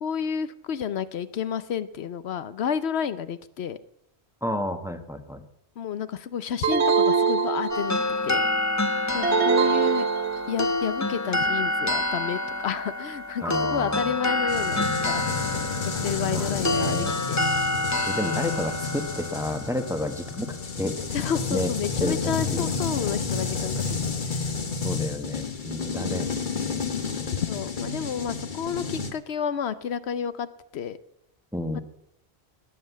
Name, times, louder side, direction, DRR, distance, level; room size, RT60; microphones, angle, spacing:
voice 1, 0.0-3.8 5.8-8.0 8.2-8.4 9.1-10.1 10.5-15.2 16.0-17.4 21.1-23.8 24.3-24.4 26.0-26.3 27.3-30.5 30.7-31.0 31.7-31.8, left 8 dB, 75° left, 13 dB, 1.0 m, -30 dB
voice 2, 4.4-5.4 13.4-14.1 16.3-17.1 18.1-21.1 21.5-21.7 22.0-22.7 24.8-27.0 31.5-31.8, left 1 dB, 5° right, 7 dB, 1.1 m, -31 dB
sound 1, 6.6-8.2 9.2-10.8, right 5 dB, 90° right, 1.3 m, -23 dB
sound 2, 7.7-20.9, left 2 dB, 20° left, 0.5 m, -28 dB
sound 3, 14.5-29.1, left 4 dB, 50° left, 1.4 m, -30 dB
20.0 x 7.6 x 8.2 m, 0.81 s
omnidirectional pair, 1.1 m